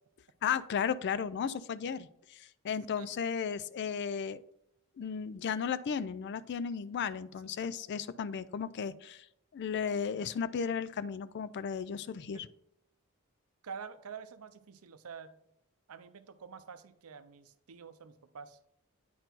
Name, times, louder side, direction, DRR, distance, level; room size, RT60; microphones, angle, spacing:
voice 1, 0.4-4.4 5.0-9.2 9.5-12.5, left 7 dB, 50° left, 16 dB, 0.3 m, -35 dB
voice 2, 13.6-15.3 15.9-18.6, right 6 dB, 80° right, 12 dB, 0.6 m, -47 dB
9.1 x 4.5 x 3.9 m, 0.77 s
head